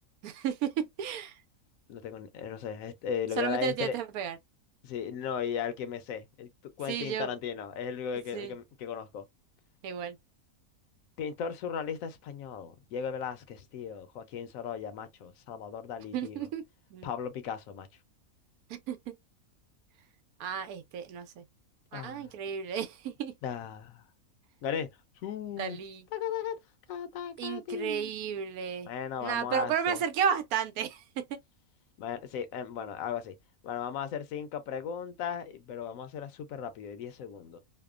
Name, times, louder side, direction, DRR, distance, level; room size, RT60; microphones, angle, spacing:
voice 1, 0.2-1.4 3.4-4.4 6.9-7.3 8.3-8.5 9.8-10.2 16.1-16.6 16.9-17.1 18.7-19.1 20.4-21.4 21.9-23.3 25.6-26.0 27.4-28.9 29.2-31.4, right 8 dB, 85° right, 1.1 m, -33 dB
voice 2, 1.9-4.0 4.8-6.5 6.8-9.3 11.2-16.4 17.0-17.9 21.9-22.3 23.4-24.0 24.6-24.9 25.2-25.8 26.1-26.6 26.9-28.1 28.9-30.0 32.0-33.4 33.6-37.6, left 7 dB, 75° left, 1.0 m, -36 dB
2.8 x 2.1 x 2.3 m
omnidirectional pair, 1.5 m